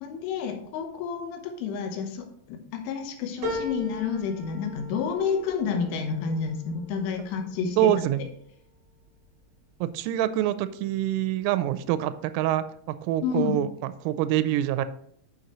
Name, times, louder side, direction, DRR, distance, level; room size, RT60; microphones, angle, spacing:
voice 1, 0.0-7.9 13.2-13.6, left 6 dB, 80° left, 5 dB, 3.5 m, -30 dB
sound 1, 3.4-8.2 8.7-9.4 9.7-9.8, left 2 dB, 40° right, 3.6 m, -39 dB
voice 2, 7.8-8.2 9.8-14.9, right 12 dB, 90° right, 13 dB, 3.1 m, -26 dB
9.3 x 6.2 x 3.0 m, 0.65 s
omnidirectional pair, 5.6 m